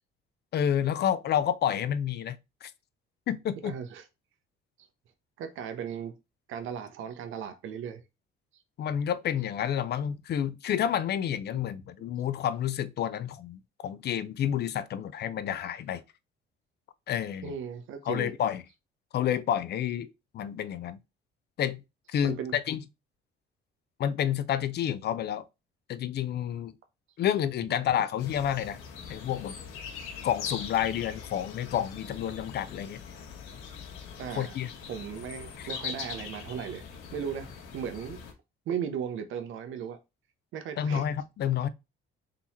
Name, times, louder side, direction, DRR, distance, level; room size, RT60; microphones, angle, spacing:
voice 1, 0.5-2.7 3.3-3.7 8.8-16.0 17.1-17.5 18.1-18.6 19.1-20.1 20.3-21.0 21.6-21.8 22.1-22.8 24.0-25.4 25.9-26.7 27.2-28.8 29.1-29.6 30.2-33.0 34.4-34.7 35.6-35.7 40.8-41.7, left 9 dB, 50° left, 0.5 m, -29 dB
voice 2, 3.6-4.0 5.4-6.2 6.5-8.0 17.4-18.3 22.2-22.5 34.2-34.6 34.9-36.8 37.1-38.2 38.7-40.0 40.5-41.0, right 8 dB, 70° right, 0.7 m, -36 dB
sound 1, 28.2-38.3, left 6 dB, 85° left, 1.2 m, -42 dB
3.8 x 2.9 x 4.1 m
cardioid pair, 105°, 21 cm